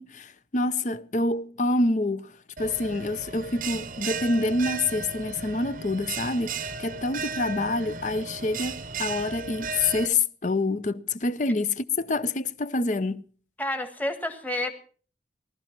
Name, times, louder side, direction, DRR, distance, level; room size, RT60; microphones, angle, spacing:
voice 1, 0.0-13.2, left 2 dB, 40° left, 0.7 m, -27 dB
Bell, 2.6-10.1, right 4 dB, 45° right, 0.8 m, -35 dB
voice 2, 13.6-14.7, left 1 dB, 10° left, 1.5 m, -29 dB
18.5 x 12.5 x 5.9 m
head